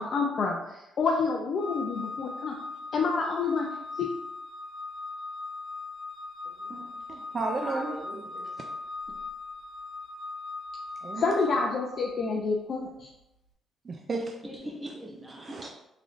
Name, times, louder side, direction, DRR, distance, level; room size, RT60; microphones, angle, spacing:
voice 1, 0.0-2.6 2.9-3.7 3.9-4.1 11.2-13.1, left 4 dB, 55° left, -1 dB, 0.5 m, -28 dB
Organ, 1.6-12.3, left 3 dB, 35° left, 1.0 m, -39 dB
voice 2, 7.1-8.0 11.0-11.4 13.9-14.3 15.4-15.7, right 3 dB, 40° right, 2 dB, 0.4 m, -33 dB
voice 3, 7.6-8.5 14.4-15.7, right 1 dB, 15° right, 0 dB, 0.8 m, -40 dB
3.7 x 3.2 x 2.5 m, 0.87 s
cardioid pair, 90°, 0 cm